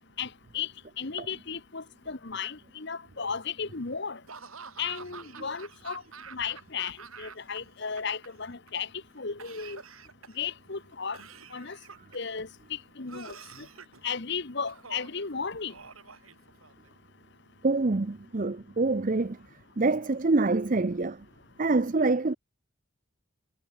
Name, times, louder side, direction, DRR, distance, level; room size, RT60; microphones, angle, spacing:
voice 1, 0.2-0.7 1.0-4.2 4.8-6.0 6.3-8.9 9.1-9.8 10.3-11.2 11.5-11.8 12.1-13.7 14.0-15.7, left 6 dB, 55° left, 1.3 m, -35 dB
Laughter / Cough, 4.3-7.6 7.8-8.7 9.4-10.5 11.1-12.3 13.1-14.0 14.7-15.2 15.7-16.9, right 5 dB, 85° right, 4.3 m, -47 dB
voice 2, 17.6-19.4 19.8-21.2 21.6-22.4, right 3 dB, 40° right, 0.6 m, -25 dB
head